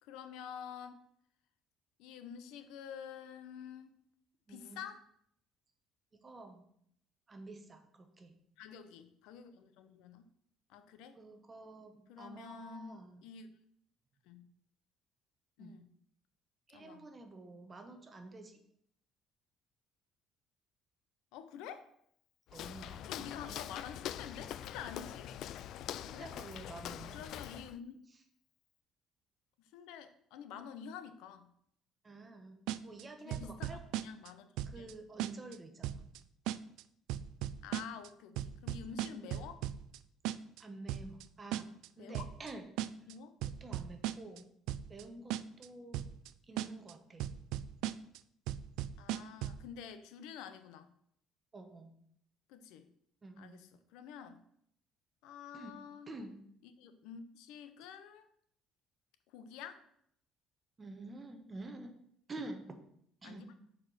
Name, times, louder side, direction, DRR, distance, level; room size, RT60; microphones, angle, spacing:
voice 1, 0.0-1.0 2.0-4.0 4.5-5.0 8.6-10.3 10.7-11.2 12.1-13.5 14.2-14.5 15.6-15.9 16.7-17.1 21.3-21.9 23.0-25.3 26.0-26.3 27.1-28.0 29.6-31.5 33.2-34.9 37.6-39.7 42.0-42.3 43.1-43.4 44.3-44.4 49.0-50.9 52.5-52.9 53.4-54.4 55.2-56.1 56.6-58.3 59.3-59.8 63.2-63.4, left 8 dB, 90° left, 10 dB, 0.8 m, -49 dB
voice 2, 4.5-4.8 6.1-6.6 7.3-8.3 11.2-13.2 15.6-15.8 16.7-18.6 22.5-23.7 26.1-27.2 32.0-33.8 34.7-36.1 39.1-39.3 40.6-41.7 42.0-42.6 43.6-44.5 44.9-46.0 46.5-47.2 51.5-51.9 53.2-53.6 55.5-55.8 56.1-56.3 60.8-61.9 62.3-62.8 63.2-63.5, right 2 dB, 20° right, 6 dB, 1.0 m, -49 dB
Walk footsteps, 22.5-27.8, left 11 dB, 60° left, 0.3 m, -44 dB
sound 1, 32.7-33.0 33.3-34.3 34.6-34.9 35.2-35.6 35.8-36.2 36.5-36.8 37.1-38.1 38.4-40.0 40.2-40.6 40.9-41.2 41.5-41.9 42.1-42.5 42.8-43.1 43.4-44.4 44.7-45.0 45.3-45.7 45.9-46.3 46.6-46.9 47.2-48.2 48.5-49.6, right 13 dB, 80° right, 0.4 m, -37 dB
6.4 x 4.9 x 6.2 m, 0.69 s
cardioid pair, 155°, 0 cm